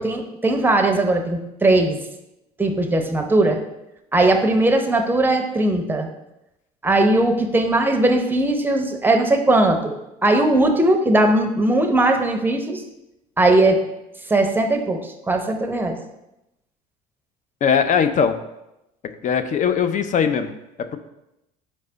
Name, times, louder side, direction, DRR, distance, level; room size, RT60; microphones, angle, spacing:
voice 1, 0.0-2.0 2.6-3.6 4.1-6.1 6.8-12.8 13.4-13.8 14.3-16.0, right 2 dB, 10° right, 5 dB, 0.6 m, -19 dB
voice 2, 17.6-18.4 19.2-20.5, left 7 dB, 40° left, 9 dB, 0.4 m, -19 dB
4.2 x 3.3 x 3.8 m, 0.89 s
supercardioid pair, 75°, 19 cm